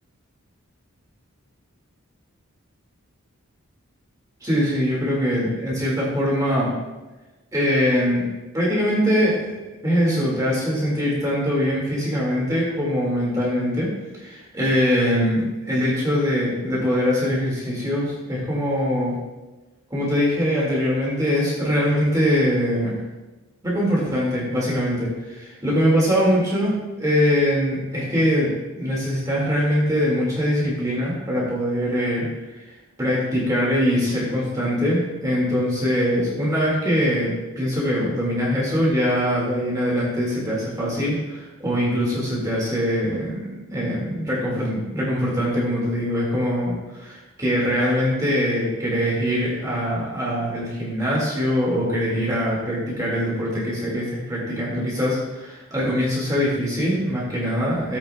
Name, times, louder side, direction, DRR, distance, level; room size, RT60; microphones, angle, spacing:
voice 1, 4.4-6.7 7.5-8.3 8.5-19.2 19.9-23.0 23.6-28.5 28.8-32.6 33.0-58.0, equal, 15° right, -6 dB, 2.1 m, -22 dB
15.0 x 8.3 x 2.3 m, 1.1 s
head